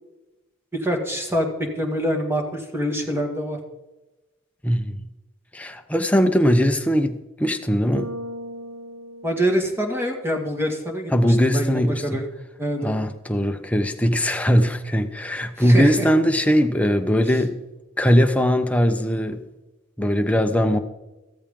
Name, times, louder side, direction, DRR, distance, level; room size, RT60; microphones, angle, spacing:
voice 1, 0.7-3.6 9.2-12.3 12.6-13.0 15.6-16.1, equal, 10° right, 2 dB, 2.1 m, -25 dB
voice 2, 4.6-5.0 5.5-8.1 11.1-12.2 12.8-17.5 18.0-19.4 20.0-20.8, equal, 5° left, 6 dB, 0.9 m, -20 dB
Bass guitar, 7.9-10.3, right 1 dB, 70° right, 0.9 m, -37 dB
15.0 x 13.5 x 3.8 m, 1.1 s
head